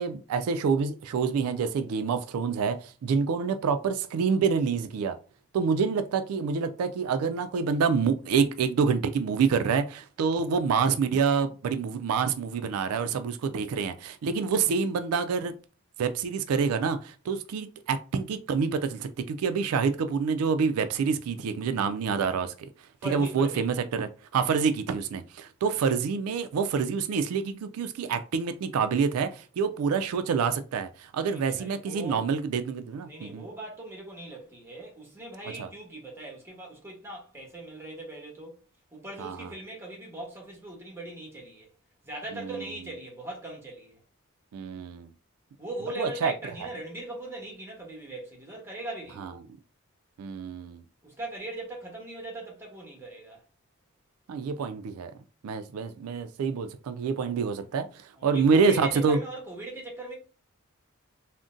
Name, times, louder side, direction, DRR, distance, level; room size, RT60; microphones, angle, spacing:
voice 1, 0.0-5.2 5.5-15.6 16.0-22.5 23.1-33.4 35.6-35.7 39.2-39.5 42.4-42.5 44.5-45.1 46.0-46.3 49.2-49.3 50.2-50.8 54.3-55.1 55.4-59.2, right 5 dB, 90° right, 0.3 m, -27 dB
voice 2, 23.0-23.7 31.2-32.3 33.0-38.6 38.9-41.7 42.0-44.0 45.6-49.4 51.0-53.4 58.2-60.1, right 1 dB, 10° right, 1.0 m, -40 dB
3.7 x 2.1 x 2.5 m
head